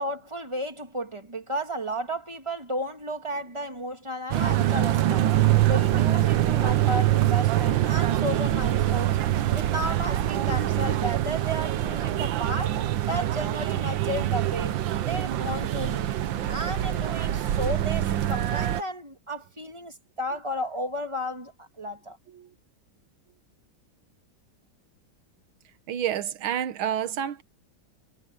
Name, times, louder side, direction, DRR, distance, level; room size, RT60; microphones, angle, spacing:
voice 1, 0.0-5.3 5.7-9.2 9.5-12.8 13.1-14.8 15.0-16.1 16.5-22.2, equal, 15° right, 2.0 m, -33 dB
sound 1, 4.3-18.8, right 13 dB, 75° right, 1.6 m, -24 dB
voice 2, 25.9-27.4, right 10 dB, 90° right, 1.8 m, -29 dB
omnidirectional pair, 2.2 m